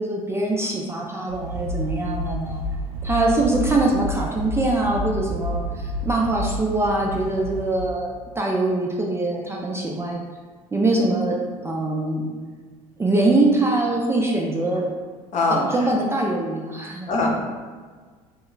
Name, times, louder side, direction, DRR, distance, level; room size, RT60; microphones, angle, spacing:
voice 1, 0.0-2.6 3.0-10.2 10.7-12.3 13.0-14.9 15.5-17.1, right 2 dB, 15° right, -2 dB, 0.4 m, -23 dB
sound 1, 1.3-7.9, equal, 85° right, 0.4 m, -30 dB
voice 2, 15.3-15.9 17.1-17.4, left 2 dB, 40° left, -1 dB, 0.7 m, -22 dB
2.2 x 2.1 x 3.7 m, 1.5 s
hypercardioid pair, 70°, 18 cm